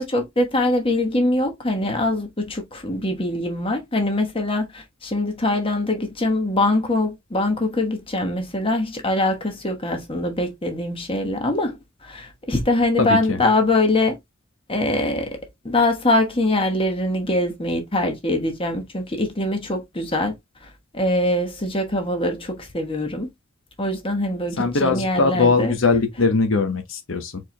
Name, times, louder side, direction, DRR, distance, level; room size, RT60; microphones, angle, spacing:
voice 1, 0.0-14.2 14.7-20.4 20.9-23.3 23.8-25.7, left 1 dB, 25° left, 1.2 m, -23 dB
voice 2, 13.0-13.4 24.6-27.4, left 4 dB, 65° left, 0.9 m, -20 dB
4.6 x 4.4 x 2.2 m
head